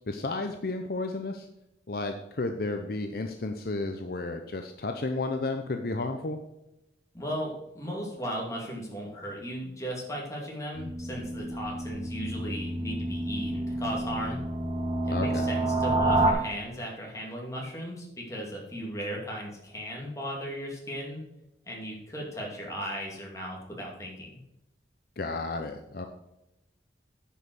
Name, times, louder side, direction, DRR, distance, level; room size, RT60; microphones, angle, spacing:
voice 1, 0.0-1.5 1.9-6.4 15.1-15.5 25.2-26.0, left 2 dB, 55° left, 5 dB, 0.7 m, -32 dB
voice 2, 7.1-14.4 15.0-21.2 21.7-24.3, equal, 15° left, -2 dB, 2.4 m, -36 dB
sound 1, 10.7-16.3, right 1 dB, 25° right, 1.2 m, -29 dB
9.9 x 5.5 x 6.3 m, 0.90 s
head